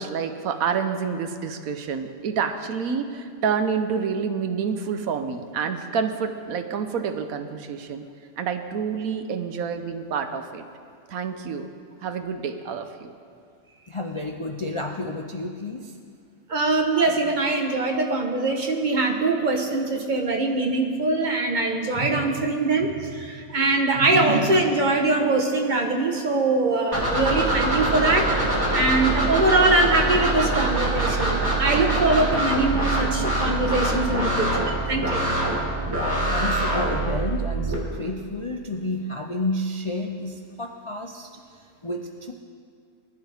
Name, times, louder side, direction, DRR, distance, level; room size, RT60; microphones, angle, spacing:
voice 1, 0.0-8.1 8.4-10.7 11.1-11.7 12.0-13.1, right 6 dB, 85° right, 8 dB, 1.3 m, -28 dB
voice 2, 13.7-16.0 36.3-41.3 41.6-42.3, left 2 dB, 40° left, 3 dB, 0.4 m, -31 dB
voice 3, 16.5-28.3 28.7-35.2, right 2 dB, 35° right, 2 dB, 1.3 m, -22 dB
sound 1, 26.9-37.7, right 2 dB, 15° right, 2.7 m, -24 dB
19.5 x 12.0 x 3.5 m, 2.3 s
omnidirectional pair, 1.5 m